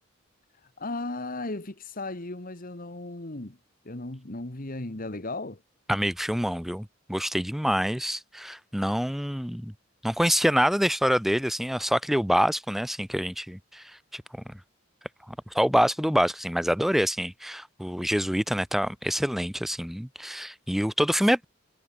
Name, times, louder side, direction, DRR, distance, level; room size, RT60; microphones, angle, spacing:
voice 1, 0.8-3.6 3.8-5.6, left 2 dB, 45° left, 1.9 m, -35 dB
voice 2, 5.9-9.7 10.0-13.8 14.1-14.2 14.5-14.6 15.3-21.4, equal, ahead, 0.9 m, -26 dB
head